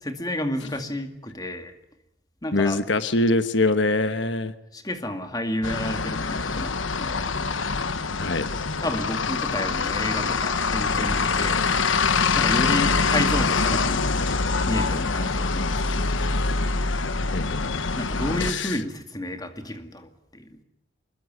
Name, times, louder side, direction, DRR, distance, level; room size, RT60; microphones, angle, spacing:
voice 1, 0.0-1.7 2.4-2.8 4.7-7.4 8.8-11.7 12.3-14.1 14.7-16.1 17.9-20.6, left 1 dB, 20° left, 7 dB, 2.2 m, -31 dB
voice 2, 2.5-4.5 8.2-8.5 12.7-13.1 17.3-17.8 18.4-18.8, left 2 dB, 70° left, 11 dB, 1.2 m, -24 dB
sound 1, 5.6-18.5, left 4 dB, 85° left, 1.2 m, -24 dB
24.5 x 21.0 x 9.5 m, 0.83 s
head